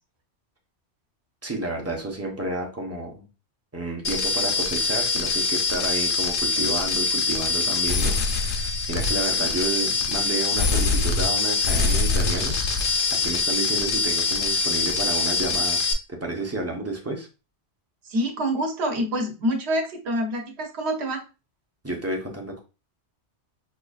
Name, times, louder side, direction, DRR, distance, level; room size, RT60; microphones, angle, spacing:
voice 1, 1.4-3.2 3.7-15.8 16.1-17.3 21.8-22.6, right 2 dB, 15° right, 1 dB, 0.6 m, -31 dB
sound 1, 4.0-15.9, left 4 dB, 75° left, 0.9 m, -24 dB
voice 2, 18.0-21.2, equal, 65° right, 3 dB, 1.1 m, -26 dB
5.1 x 2.4 x 2.3 m, 0.30 s
omnidirectional pair, 1.2 m